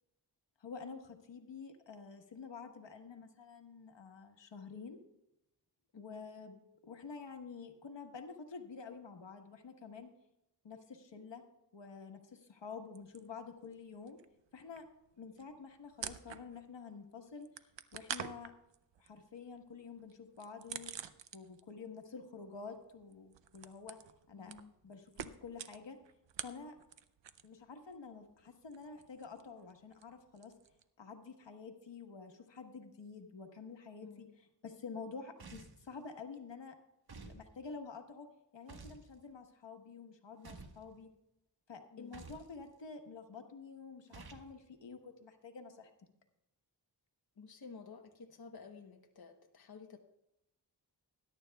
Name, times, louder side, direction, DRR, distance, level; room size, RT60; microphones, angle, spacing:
voice 1, 0.6-5.0 5.9-6.6 6.8-10.1 10.6-11.4 11.7-14.2 14.5-14.9 15.2-17.5 17.9-18.5 19.0-20.9 21.3-24.0 24.3-24.5 24.8-26.0 26.4-26.8 27.4-30.5 31.0-36.7 37.2-38.3 38.5-41.1 41.7-45.9, left 5 dB, 85° left, 4 dB, 1.4 m, -49 dB
sound 1, 12.9-13.8 14.1-16.8 17.1-21.8 22.0-27.6 27.9-30.8, right 8 dB, 85° right, 0.7 m, -48 dB
voice 2, 24.4-24.7 34.0-34.3 41.9-42.2 47.4-50.0, left 5 dB, 60° left, 4 dB, 1.0 m, -53 dB
sound 2, 35.4-35.9 37.1-37.4 38.7-39.1 40.4-40.8 42.1-42.5 44.1-44.5, right 4 dB, 60° right, 1.4 m, -51 dB
20.5 x 11.0 x 2.3 m, 0.86 s
wide cardioid pair, 65°, 42 cm